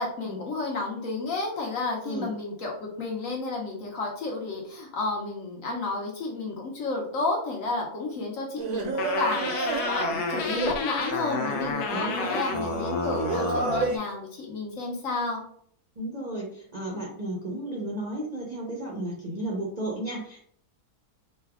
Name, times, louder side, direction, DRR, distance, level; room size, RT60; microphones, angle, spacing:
voice 1, 0.0-15.4, left 3 dB, 60° left, -1 dB, 1.2 m, -31 dB
voice 2, 2.0-2.4 11.9-12.4 16.0-20.4, right 1 dB, 40° right, -4 dB, 0.6 m, -33 dB
Singing, 8.6-14.0, right 3 dB, 80° right, 1.1 m, -31 dB
sound 1, 9.0-13.9, left 3 dB, 85° left, 1.1 m, -31 dB
3.2 x 2.3 x 3.4 m, 0.62 s
omnidirectional pair, 1.6 m